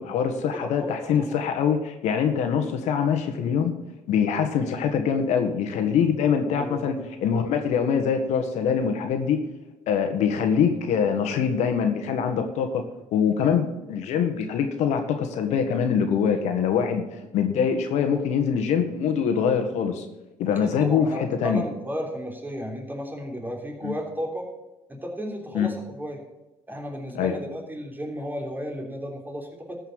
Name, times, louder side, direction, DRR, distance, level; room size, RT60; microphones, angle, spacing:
voice 1, 0.0-3.7 4.1-9.4 9.9-12.8 13.1-17.0 17.3-20.1 20.4-21.6 23.8-23.9 25.5-25.7 27.1-27.3, left 7 dB, 75° left, 7 dB, 1.5 m, -24 dB
voice 2, 0.6-0.9 1.2-1.3 5.9-6.1 6.5-7.0 20.4-24.5 24.9-26.2 26.7-29.8, equal, 15° right, 1 dB, 3.4 m, -34 dB
13.5 x 5.6 x 7.6 m, 0.99 s
supercardioid pair, 85°, 12 cm